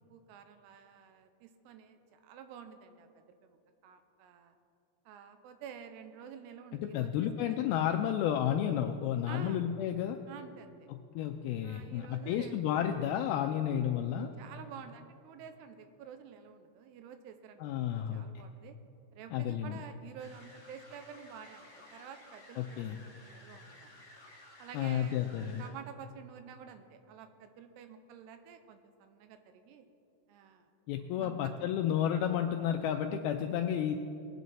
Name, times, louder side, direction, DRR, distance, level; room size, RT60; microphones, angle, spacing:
voice 1, 0.0-3.6 3.8-4.5 5.1-7.6 9.3-9.6 10.3-10.9 11.6-12.6 14.4-18.8 19.1-24.1 24.6-29.9 30.3-30.7 31.2-31.5, right 7 dB, 85° right, 8 dB, 2.8 m, -50 dB
voice 2, 6.7-10.2 10.9-14.3 17.6-18.2 19.3-19.8 22.6-23.0 24.7-25.7 30.9-34.0, left 10 dB, 90° left, 5 dB, 2.1 m, -32 dB
sound 1, 20.2-25.7, left 1 dB, 50° left, 0.5 m, -55 dB
20.5 x 9.3 x 4.1 m, 2.7 s
omnidirectional pair, 4.9 m